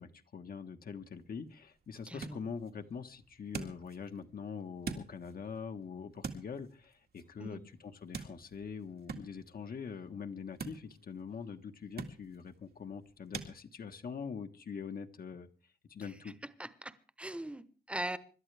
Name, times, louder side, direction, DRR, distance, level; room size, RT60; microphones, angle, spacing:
voice 1, 0.0-15.5 15.9-16.3, left 6 dB, 65° left, 1.4 m, -44 dB
sound 1, 1.0-13.5, right 5 dB, 80° right, 2.1 m, -48 dB
voice 2, 2.1-2.4 7.4-7.6 16.3-16.4 16.6-18.2, right 1 dB, 5° right, 1.0 m, -41 dB
26.0 x 12.5 x 3.4 m
wide cardioid pair, 130°, 16 cm